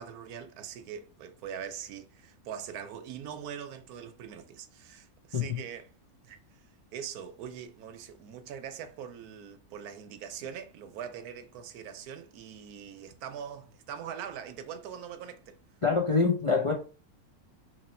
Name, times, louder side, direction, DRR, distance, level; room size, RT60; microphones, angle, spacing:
voice 1, 0.0-5.9 6.2-6.4 6.9-15.6, right 8 dB, 85° right, 1.1 m, -42 dB
voice 2, 15.8-16.7, left 4 dB, 40° left, 0.5 m, -25 dB
3.1 x 2.9 x 4.2 m
omnidirectional pair, 1.5 m